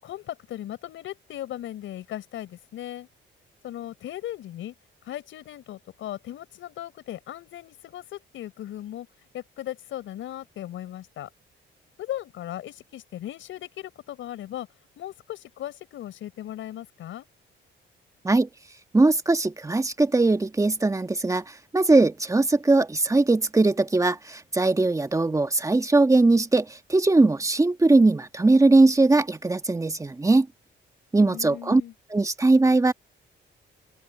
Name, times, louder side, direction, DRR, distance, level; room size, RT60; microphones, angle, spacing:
voice 1, 0.0-3.1 3.6-4.7 5.0-9.1 9.3-11.3 12.0-14.7 15.0-17.3 31.2-31.9, left 12 dB, 80° left, 6.3 m, -37 dB
voice 2, 18.9-30.5 31.1-31.8 32.1-32.9, right 2 dB, 15° right, 1.4 m, -20 dB
open air
cardioid pair, 90°, 20 cm